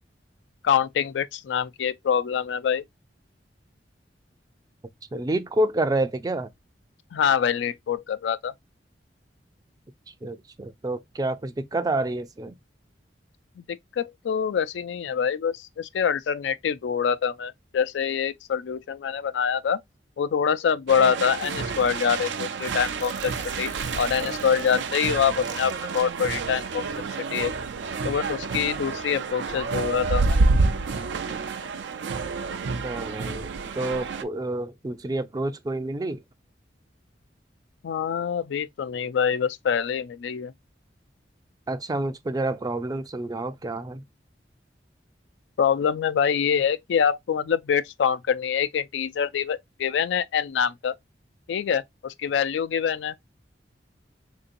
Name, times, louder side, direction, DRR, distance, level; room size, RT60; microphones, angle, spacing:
voice 1, 0.6-2.8 7.1-8.5 13.6-19.8 20.2-23.3 23.6-23.7 24.0-26.8 27.3-27.5 28.0-30.4 37.8-40.5 45.6-50.9 51.5-53.1, left 7 dB, 80° left, 0.4 m, -25 dB
voice 2, 5.1-6.5 10.1-12.5 32.8-36.2 41.7-44.0, right 2 dB, 20° right, 0.4 m, -28 dB
sound 1, 20.9-34.2, right 4 dB, 80° right, 0.4 m, -28 dB
Zipper (clothing), 21.4-26.0, right 5 dB, 45° right, 0.7 m, -46 dB
3.7 x 2.7 x 2.5 m
head